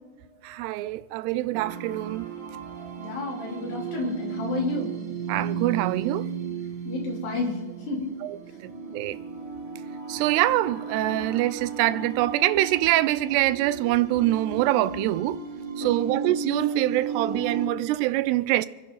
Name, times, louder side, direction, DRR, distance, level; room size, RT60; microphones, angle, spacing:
voice 1, 0.4-2.3 5.3-6.3 8.2-9.2 10.1-15.4 15.8-18.7, right 16 dB, 90° right, 2.7 m, -25 dB
sound 1, 1.5-17.7, right 5 dB, 50° right, 1.3 m, -34 dB
voice 2, 3.0-4.9 6.9-7.6 7.9-8.1 15.8-16.1, left 3 dB, 80° left, 5.7 m, -31 dB
28.0 x 10.5 x 4.0 m
omnidirectional pair, 4.7 m